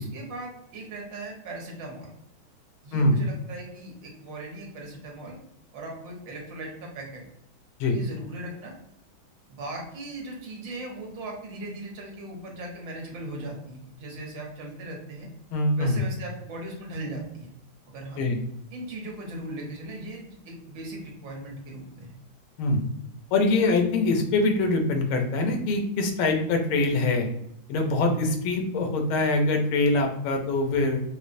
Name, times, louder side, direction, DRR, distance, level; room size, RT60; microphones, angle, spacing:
voice 1, 0.0-2.1 2.8-5.3 5.7-7.2 7.9-8.7 9.5-15.3 15.8-17.5 17.9-18.2 18.7-22.2, right 1 dB, 65° right, -1 dB, 1.5 m, -38 dB
voice 2, 15.5-16.0 18.2-18.4 22.6-22.8 23.3-27.3 27.7-31.0, left 2 dB, 90° left, 4 dB, 1.5 m, -23 dB
5.1 x 2.0 x 2.5 m, 0.77 s
omnidirectional pair, 2.3 m